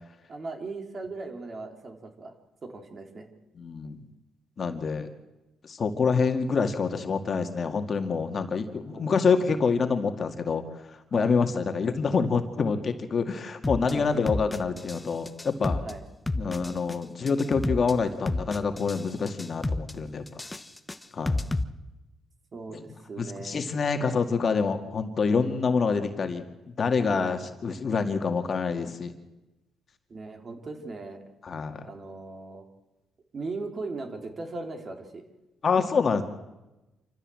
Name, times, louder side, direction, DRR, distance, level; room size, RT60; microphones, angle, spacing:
voice 1, 0.3-2.3 2.6-3.3 8.9-9.1 11.1-11.3 13.8-14.3 15.8-16.0 22.5-23.7 27.1-27.4 30.1-31.2 31.8-32.6 33.3-35.2, right 3 dB, 40° right, 5 dB, 3.4 m, -38 dB
voice 2, 3.6-4.0 4.6-5.1 5.6-10.6 11.1-15.8 16.4-20.2 21.1-21.4 22.7-22.8 23.2-26.4 26.8-29.1 31.4-31.8 35.6-36.2, left 5 dB, 45° left, 6 dB, 2.1 m, -26 dB
sound 1, 13.6-13.9 14.3-15.0 15.3-15.9 16.3-16.9 17.3-17.9 18.3-19.0 19.3-19.9 20.3-21.6, left 2 dB, 15° left, 1.1 m, -30 dB
27.0 x 14.0 x 7.7 m, 1.0 s
cardioid pair, 90°, 0 cm